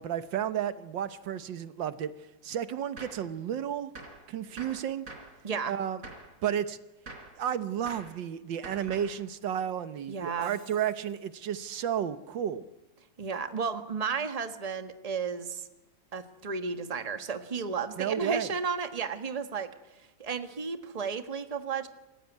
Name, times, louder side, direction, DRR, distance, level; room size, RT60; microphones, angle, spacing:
voice 1, 0.0-2.1 2.4-3.9 4.3-5.1 5.7-6.0 6.4-6.8 7.4-12.6 18.0-18.5, right 9 dB, 80° right, 13 dB, 1.7 m, -32 dB
Gunshot gunfire, 3.0-3.3 4.0-4.3 4.6-5.4 6.0-6.3 7.1-7.4 7.9-8.2 8.6-9.2, right 3 dB, 45° right, 4.1 m, -45 dB
voice 2, 10.1-10.5 13.2-15.6 16.1-19.7 20.2-21.9, right 5 dB, 20° right, 9 dB, 1.4 m, -33 dB
Shatter, 10.2-11.3, left 1 dB, 60° left, 5.8 m, -57 dB
27.5 x 15.0 x 9.4 m, 1.0 s
omnidirectional pair, 2.0 m